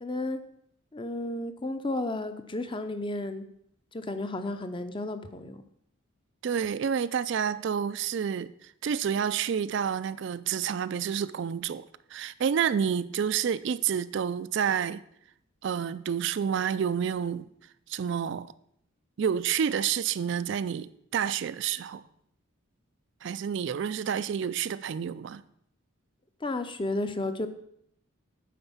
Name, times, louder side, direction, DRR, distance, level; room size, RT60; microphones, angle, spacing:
voice 1, 0.0-0.4 0.9-3.5 3.9-5.6 26.4-27.5, left 2 dB, 25° left, 0.6 m, -32 dB
voice 2, 6.4-15.0 15.6-17.5 17.9-18.5 19.2-22.0 23.2-25.4, right 7 dB, 55° right, 0.3 m, -29 dB
9.4 x 4.4 x 7.1 m
head